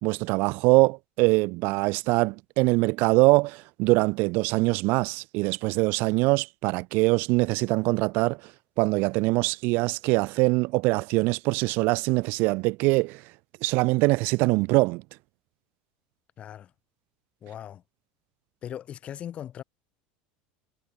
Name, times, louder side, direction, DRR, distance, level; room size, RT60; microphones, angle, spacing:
voice 1, 0.0-8.4 8.8-13.2 13.6-15.0, right 25 dB, 50° right, 0.4 m, -23 dB
voice 2, 16.4-16.7 17.4-17.8 18.6-19.6, left 10 dB, 30° left, 1.7 m, -39 dB
cardioid pair, 160°, 4 cm